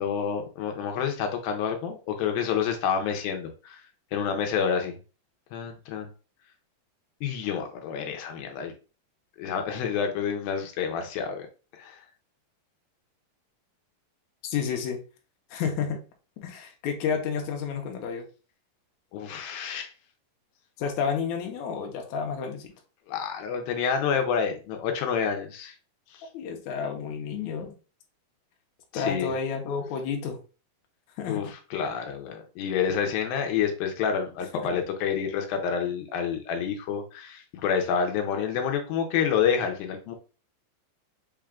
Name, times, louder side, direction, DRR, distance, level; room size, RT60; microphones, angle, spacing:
voice 1, 0.0-3.8 4.1-5.0 5.5-6.1 7.2-8.7 9.4-11.5 11.7-12.0 19.1-19.9 23.1-25.7 26.1-26.2 28.9-29.3 31.3-40.1, left 7 dB, 90° left, 4 dB, 2.5 m, -28 dB
voice 2, 14.5-15.0 15.5-16.0 16.4-18.3 20.8-22.7 26.3-27.7 28.9-30.4 31.2-31.5 34.5-34.7, left 6 dB, 70° left, 3 dB, 1.8 m, -30 dB
5.6 x 2.3 x 3.6 m, 0.34 s
omnidirectional pair, 4.2 m